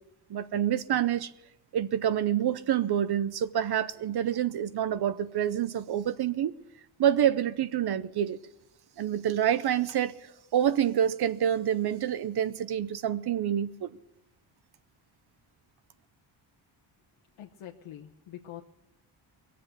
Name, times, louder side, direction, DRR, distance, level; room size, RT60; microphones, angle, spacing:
voice 1, 0.3-1.3 1.7-6.6 7.0-8.4 9.0-10.2 10.5-13.9, right 10 dB, 55° right, 0.7 m, -27 dB
voice 2, 17.4-18.6, left 11 dB, 80° left, 1.1 m, -44 dB
21.5 x 7.6 x 7.9 m
cardioid pair, 115°, 48 cm